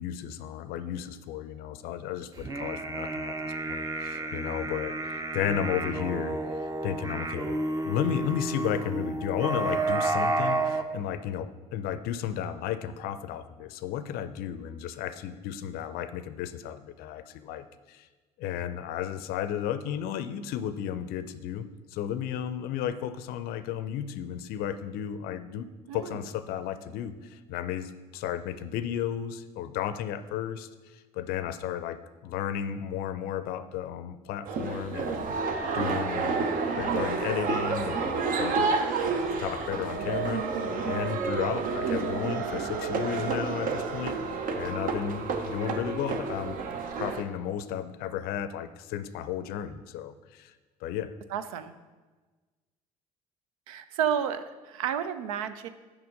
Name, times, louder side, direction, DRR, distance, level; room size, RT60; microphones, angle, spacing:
voice 1, 0.0-5.0 5.3-6.4 6.8-7.6 7.8-18.1 18.4-25.7 25.9-35.4 35.7-36.5 36.8-38.8 39.1-40.4 40.8-46.6 47.0-50.5 50.8-51.1, left 9 dB, 55° left, 13 dB, 0.5 m, -33 dB
sound 1, 2.4-10.8, right 2 dB, 20° right, 0.7 m, -31 dB
voice 2, 25.9-26.2 51.3-51.7 53.7-55.7, right 9 dB, 70° right, 12 dB, 0.5 m, -31 dB
sound 2, 34.5-47.2, right 4 dB, 45° right, 0.8 m, -30 dB
6.8 x 5.7 x 5.2 m, 1.3 s
figure-of-eight pair, 60°, 19 cm